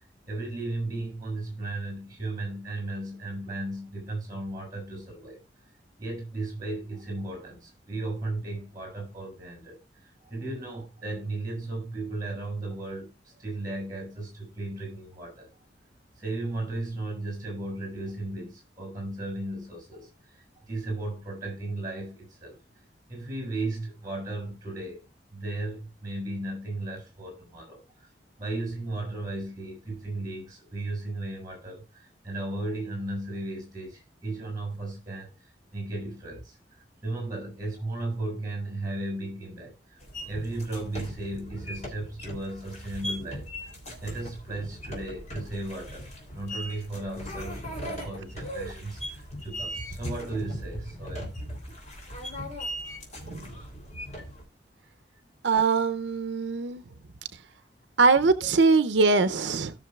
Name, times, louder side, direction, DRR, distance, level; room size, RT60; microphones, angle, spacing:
voice 1, 0.2-5.4 6.0-9.8 10.3-15.5 16.2-22.6 23.1-25.0 25.3-27.8 28.4-35.3 35.7-36.6 37.0-39.7 40.3-43.4 44.0-51.5, right 2 dB, 20° right, 6.4 m, -35 dB
sound 1, 40.0-54.4, equal, 40° left, 3.2 m, -39 dB
voice 2, 55.4-56.8 58.0-59.7, right 4 dB, 85° right, 0.6 m, -22 dB
17.0 x 6.5 x 2.4 m
head